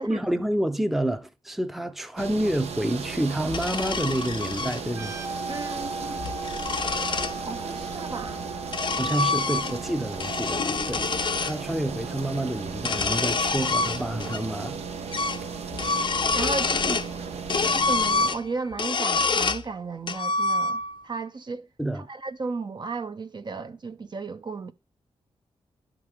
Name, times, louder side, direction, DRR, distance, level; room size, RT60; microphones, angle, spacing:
voice 1, 0.0-5.1 9.0-14.8 21.8-22.1, right 1 dB, ahead, 0.6 m, -28 dB
sound 1, 2.2-18.3, right 6 dB, 75° right, 0.8 m, -36 dB
sound 2, 3.5-4.8 6.0-7.4 8.3-9.9 10.2-11.6 12.7-14.4 14.7-14.8 15.1-15.4 15.7-17.1 17.5-19.7 20.1-21.0, left 4 dB, 45° left, 0.5 m, -27 dB
sound 3, 4.9-12.4, right 2 dB, 25° right, 1.4 m, -39 dB
voice 2, 5.5-6.2 7.5-8.4 16.3-17.1 17.6-21.7 21.9-24.7, right 4 dB, 45° right, 0.6 m, -34 dB
11.0 x 3.7 x 4.8 m
cardioid pair, 80°, 11 cm